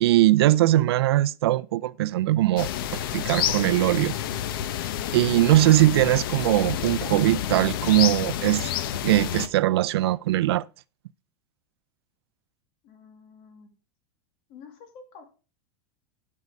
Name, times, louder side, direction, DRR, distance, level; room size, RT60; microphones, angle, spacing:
voice 1, 0.0-4.1 5.1-8.7 9.0-10.6, right 15 dB, 85° right, 0.5 m, -21 dB
sound 1, 2.6-9.5, left 10 dB, 65° left, 0.9 m, -29 dB
voice 2, 12.8-13.7 14.5-15.2, left 5 dB, 40° left, 2.3 m, -48 dB
12.0 x 5.4 x 4.8 m
supercardioid pair, 175°, 13 cm